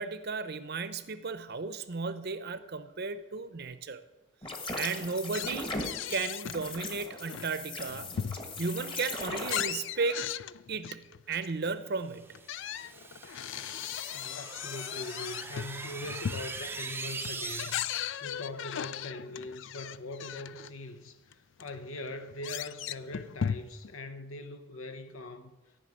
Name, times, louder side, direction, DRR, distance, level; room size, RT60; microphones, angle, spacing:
voice 1, 0.0-4.0 4.7-5.8 6.1-8.1 8.6-10.2 10.7-12.4, right 4 dB, 50° right, 0.7 m, -34 dB
sound 1, 4.4-9.6, left 2 dB, 25° left, 1.4 m, -38 dB
sound 2, 5.3-6.6 7.1-8.7 9.2-11.7 12.3-20.7 21.3-21.4 21.6-23.9, left 9 dB, 60° left, 0.4 m, -37 dB
sound 3, 12.2-18.2, right 3 dB, 10° right, 0.5 m, -41 dB
voice 2, 14.1-25.6, left 2 dB, 80° left, 1.0 m, -42 dB
14.0 x 5.9 x 9.2 m
head